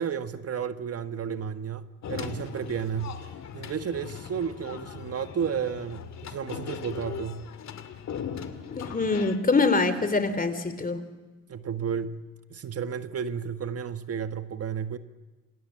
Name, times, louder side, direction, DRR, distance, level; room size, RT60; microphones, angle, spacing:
voice 1, 0.0-3.2 3.5-7.4 11.5-12.2 12.5-15.0, right 7 dB, 50° right, 9 dB, 1.4 m, -32 dB
sound 1, 2.0-9.4, left 8 dB, 60° left, 2.7 m, -39 dB
voice 2, 8.8-11.0, left 3 dB, 30° left, 12 dB, 3.3 m, -24 dB
29.0 x 27.0 x 7.5 m, 1.3 s
cardioid pair, 90°, 30 cm